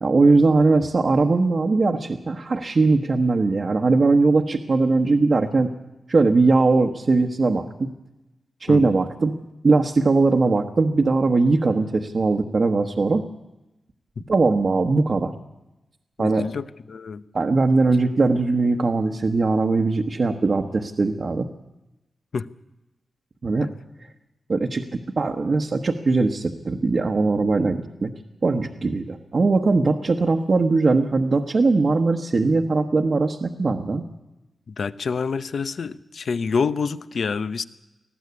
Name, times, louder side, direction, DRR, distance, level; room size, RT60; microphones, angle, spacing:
voice 1, 0.0-5.7 6.1-7.9 8.6-9.3 9.6-13.2 14.3-15.3 16.2-16.5 17.3-21.5 23.4-23.7 24.5-24.8 25.2-28.1 28.4-34.0, right 3 dB, 50° right, 1 dB, 1.2 m, -20 dB
voice 2, 16.2-17.2 22.3-22.5 34.7-37.6, left 5 dB, 70° left, 14 dB, 0.7 m, -27 dB
20.0 x 14.5 x 9.6 m, 1.0 s
wide cardioid pair, 95°, 0 cm